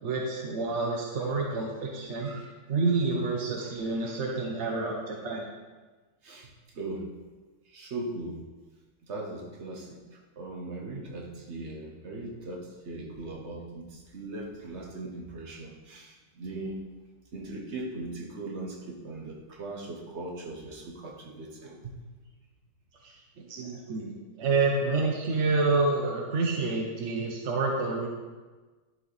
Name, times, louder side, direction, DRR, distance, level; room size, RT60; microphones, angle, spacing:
voice 1, 0.0-2.3 2.7-5.5 23.0-24.1 24.4-28.1, right 3 dB, 60° right, 0 dB, 0.7 m, -28 dB
voice 2, 2.2-2.6 3.7-4.1 6.2-7.1 7.7-8.5 9.0-10.0 10.4-16.8 17.3-21.9, right 2 dB, 40° right, -1 dB, 1.2 m, -39 dB
11.0 x 4.9 x 4.1 m, 1.3 s
omnidirectional pair, 2.3 m